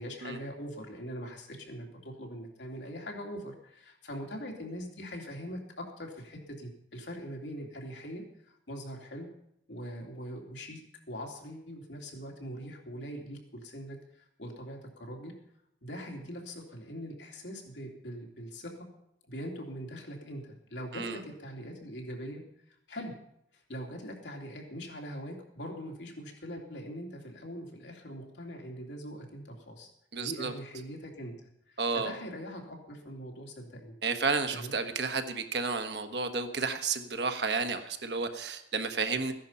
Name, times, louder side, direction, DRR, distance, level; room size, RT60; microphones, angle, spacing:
voice 1, 0.0-9.3 9.7-10.8 11.1-15.4 15.8-18.9 19.3-22.4 22.9-23.2 23.5-29.9 30.2-31.3 31.7-33.9 34.5-34.7, equal, 85° left, 0 dB, 3.0 m, -42 dB
voice 2, 30.1-30.5 31.8-32.1 34.0-39.3, right 4 dB, 65° right, 6 dB, 1.3 m, -31 dB
15.0 x 10.5 x 5.7 m, 0.78 s
head